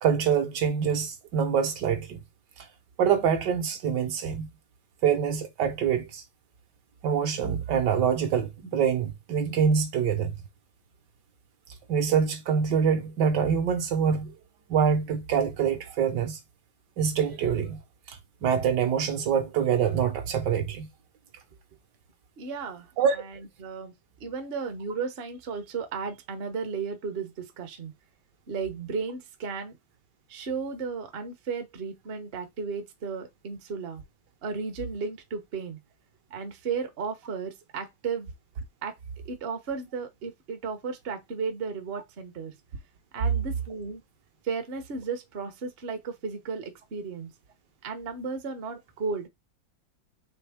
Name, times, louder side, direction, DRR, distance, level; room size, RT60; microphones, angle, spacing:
voice 1, 0.0-2.2 3.0-4.5 5.0-6.2 7.0-10.3 11.9-14.3 14.7-16.4 17.0-17.8 18.1-20.9 23.0-23.2, right 7 dB, 70° right, 1.5 m, -25 dB
voice 2, 22.4-22.9 23.6-23.9 24.2-27.9 28.5-29.8 30.3-34.0 34.4-35.8 36.3-38.3 38.8-39.0 39.2-42.5 43.1-44.0 44.4-47.3 47.8-49.3, right 5 dB, 45° right, 0.8 m, -34 dB
4.5 x 3.4 x 3.4 m
omnidirectional pair, 2.0 m